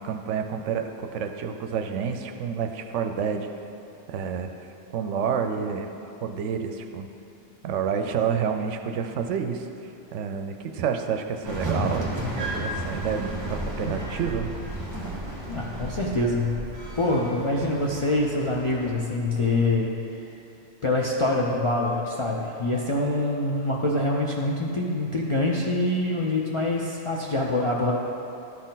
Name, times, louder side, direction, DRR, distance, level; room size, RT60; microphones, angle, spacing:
voice 1, 0.0-3.5 4.1-4.5 4.9-5.9 6.2-7.1 7.6-9.7 10.1-12.1 12.4-14.5, right 7 dB, 80° right, 6 dB, 0.9 m, -29 dB
sound 1, 11.4-18.9, right 1 dB, 25° right, 1.3 m, -33 dB
voice 2, 15.5-16.7 17.0-20.0 20.8-28.0, left 2 dB, 45° left, -3 dB, 0.4 m, -25 dB
12.0 x 4.3 x 4.0 m, 2.8 s
omnidirectional pair, 1.2 m